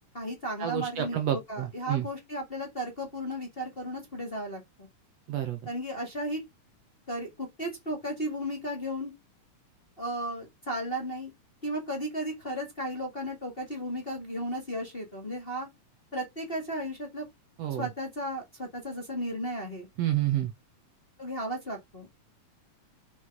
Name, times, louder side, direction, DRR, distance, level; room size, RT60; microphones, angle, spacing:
voice 1, 0.0-4.9 5.6-6.4 7.1-9.1 10.0-11.3 11.6-15.7 16.1-17.2 17.8-19.9 21.2-22.1, equal, 25° left, 1.5 m, -35 dB
voice 2, 0.6-2.1 5.3-5.6 17.6-17.9 20.0-20.5, right 12 dB, 70° right, 1.8 m, -29 dB
6.4 x 4.4 x 5.7 m
omnidirectional pair, 3.6 m